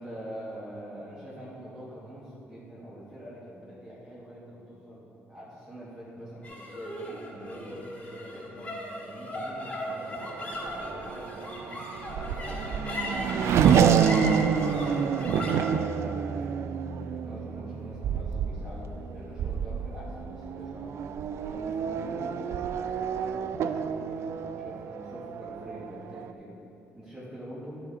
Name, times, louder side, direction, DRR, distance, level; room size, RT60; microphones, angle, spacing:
voice 1, 0.0-8.7 9.0-11.7 12.1-16.6 17.0-20.9 21.4-26.6 26.9-27.8, equal, 20° right, -8 dB, 2.0 m, -45 dB
sound 1, 6.4-23.0, equal, 30° left, 2.1 m, -39 dB
Race car auto racing / Accelerating revving vroom, 10.1-26.3, right 7 dB, 70° right, 0.4 m, -28 dB
11.5 x 6.9 x 4.2 m, 2.8 s
cardioid pair, 125°, 5 cm